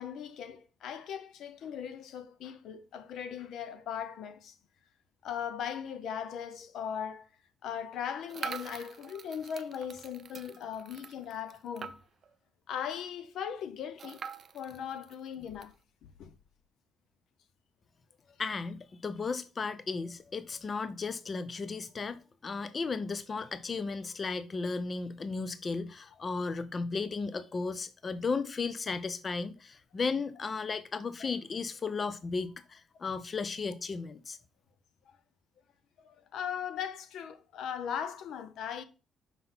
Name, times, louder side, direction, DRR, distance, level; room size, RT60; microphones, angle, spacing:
voice 1, 0.0-4.5 5.2-7.3 7.6-11.9 12.7-14.2 14.5-15.7 16.2-16.3 31.2-31.3 36.0-38.8, left 8 dB, 75° left, 0.7 m, -38 dB
sound 1, 8.3-12.3 12.7-12.8 13.0-13.1 14.0-15.7, right 6 dB, 50° right, 0.5 m, -44 dB
voice 2, 18.4-34.4, left 4 dB, 40° left, 0.5 m, -35 dB
5.7 x 3.8 x 5.5 m
cardioid pair, 90°, 0 cm